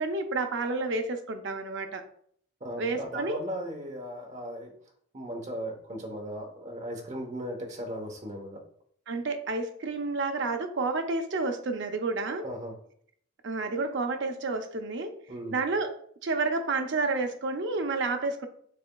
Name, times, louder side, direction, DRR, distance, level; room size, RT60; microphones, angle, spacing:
voice 1, 0.0-2.0 2.8-3.4 9.1-12.4 13.4-15.1 15.5-15.9 16.2-18.5, right 3 dB, 60° right, 6 dB, 0.6 m, -30 dB
voice 2, 2.6-4.7 5.1-8.6 12.4-12.7 15.3-15.6, equal, 35° right, 1 dB, 0.9 m, -37 dB
6.7 x 3.4 x 2.3 m, 0.63 s
head